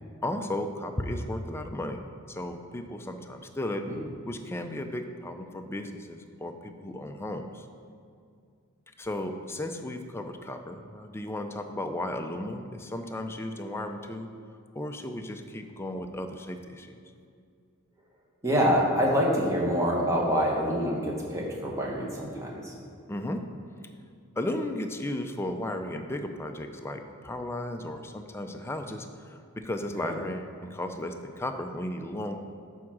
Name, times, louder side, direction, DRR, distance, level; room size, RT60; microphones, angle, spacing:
voice 1, 0.2-2.0 2.3-3.9 4.2-7.7 9.0-14.3 14.7-17.0 23.1-23.4 24.4-32.4, left 1 dB, 10° left, 5 dB, 0.4 m, -35 dB
voice 2, 18.4-22.7 30.0-30.1, equal, 15° right, -2 dB, 1.1 m, -26 dB
9.3 x 3.6 x 6.2 m, 2.3 s
head